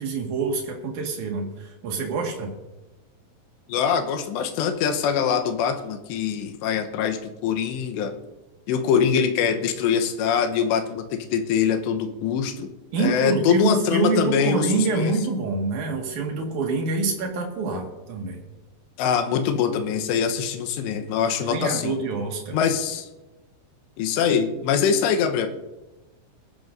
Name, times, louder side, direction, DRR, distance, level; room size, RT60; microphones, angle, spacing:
voice 1, 0.0-2.5 12.9-18.4 21.4-22.6, right 3 dB, 55° right, 1 dB, 2.7 m, -26 dB
voice 2, 3.7-8.1 8.7-12.7 13.0-15.1 19.0-21.9 22.5-23.1 24.0-25.5, left 7 dB, 85° left, 6 dB, 3.1 m, -23 dB
21.0 x 12.5 x 2.6 m, 1.1 s
omnidirectional pair, 5.1 m